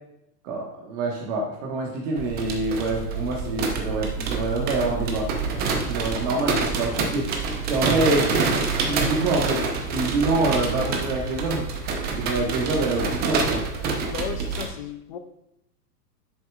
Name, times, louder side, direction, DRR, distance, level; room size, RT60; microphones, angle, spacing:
voice 1, 0.4-5.3 5.7-7.3 7.7-8.5 8.8-9.7 9.9-11.6 12.1-13.6, right 2 dB, 45° right, -2 dB, 1.3 m, -26 dB
sound 1, 2.2-14.7, right 4 dB, 20° right, 0.7 m, -27 dB
voice 2, 14.0-15.2, left 9 dB, 35° left, 10 dB, 0.4 m, -34 dB
8.3 x 6.8 x 2.3 m, 0.83 s
hypercardioid pair, 125°, 49 cm